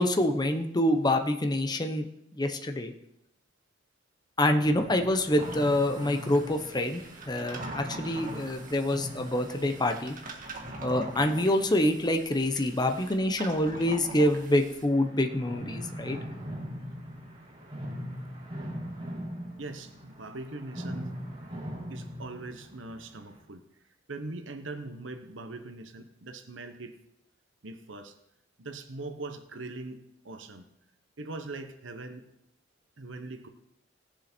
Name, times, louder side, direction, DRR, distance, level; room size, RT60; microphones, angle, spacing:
voice 1, 0.0-2.1 2.3-2.9 4.4-10.2 10.8-16.2, left 1 dB, 20° left, 5 dB, 0.9 m, -26 dB
sound 1, 4.6-12.8 14.6-23.4, equal, 30° right, 3.5 m, -41 dB
sound 2, 5.4-14.9, right 2 dB, 45° right, 1.7 m, -44 dB
voice 2, 19.6-21.1 21.9-23.6 24.1-27.0 27.6-28.1 28.6-30.7 31.2-32.3 33.0-33.5, right 2 dB, 85° right, 8 dB, 1.0 m, -41 dB
18.5 x 7.4 x 4.4 m, 0.82 s
head